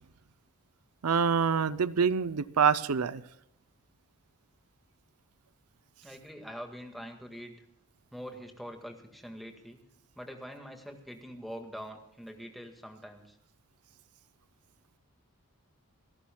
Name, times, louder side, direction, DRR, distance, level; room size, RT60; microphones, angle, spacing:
voice 1, 1.0-3.2, right 6 dB, 90° right, 0.6 m, -26 dB
voice 2, 6.0-7.5 8.1-9.8 10.2-13.4, equal, ahead, 1.9 m, -44 dB
27.5 x 13.0 x 2.3 m
head